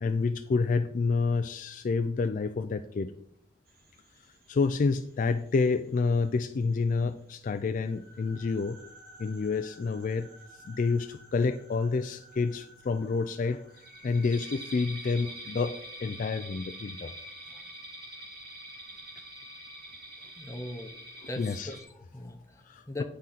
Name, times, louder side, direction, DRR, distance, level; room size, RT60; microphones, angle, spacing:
voice 1, 0.0-3.1 4.5-8.8 9.2-10.3 10.7-13.6 14.0-17.1 21.4-21.7 22.7-23.0, left 4 dB, 50° left, 9 dB, 0.3 m, -28 dB
sound 1, 3.7-5.3 5.8-5.9 6.3-6.4 7.8-21.8, right 1 dB, 60° right, 2.1 m, -47 dB
voice 2, 20.4-20.9 21.2-23.0, left 1 dB, 15° left, 5 dB, 0.8 m, -40 dB
9.2 x 3.8 x 5.7 m, 0.70 s
head